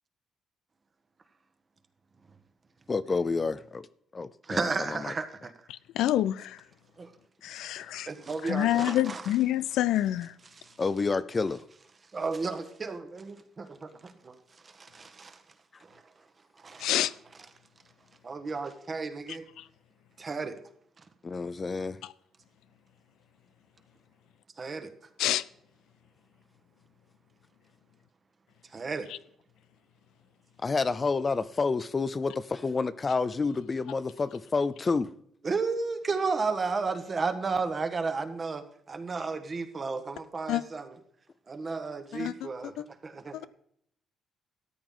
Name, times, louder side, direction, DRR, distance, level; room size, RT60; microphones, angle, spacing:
voice 1, 2.9-3.9 4.1-5.1 10.8-11.6 21.2-22.0 30.6-35.1, left 4 dB, 30° left, 0.5 m, -29 dB
voice 2, 4.5-5.5 7.0-7.1 7.5-9.3 10.5-10.7 12.1-14.3 14.6-15.4 15.8-16.0 16.6-16.9 18.2-19.5 20.2-20.6 24.6-24.9 28.7-29.1 35.4-40.9 41.5-43.5, right 4 dB, 35° right, 1.4 m, -33 dB
voice 3, 5.7-6.6 7.4-8.1 8.4-10.3 16.8-17.1 19.6-19.7 25.2-25.4 40.5-40.6 42.1-42.3 43.3-43.4, left 13 dB, 85° left, 0.4 m, -27 dB
13.5 x 9.1 x 3.9 m
cardioid pair, 90°, 0 cm